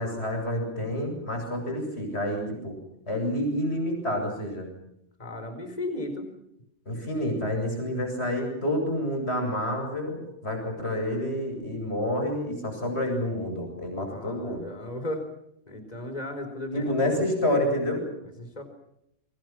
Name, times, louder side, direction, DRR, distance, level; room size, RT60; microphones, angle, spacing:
voice 1, 0.0-2.7 3.1-4.7 6.9-14.6 16.7-18.0, left 1 dB, 60° left, 4 dB, 8.3 m, -28 dB
voice 2, 5.2-6.3 14.0-15.3 15.7-17.2 18.4-18.6, left 1 dB, 35° left, 8 dB, 4.5 m, -35 dB
29.5 x 24.5 x 6.2 m, 0.79 s
omnidirectional pair, 1.3 m